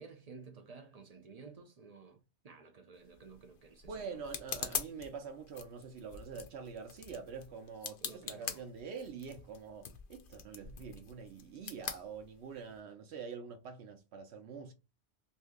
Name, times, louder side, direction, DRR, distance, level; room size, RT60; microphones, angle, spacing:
voice 1, 0.0-4.3 8.0-8.6, right 4 dB, 50° right, 0.5 m, -53 dB
sound 1, 3.0-12.8, left 7 dB, 60° left, 0.7 m, -45 dB
voice 2, 3.8-14.7, right 5 dB, 75° right, 0.9 m, -45 dB
2.7 x 2.6 x 3.5 m
omnidirectional pair, 1.2 m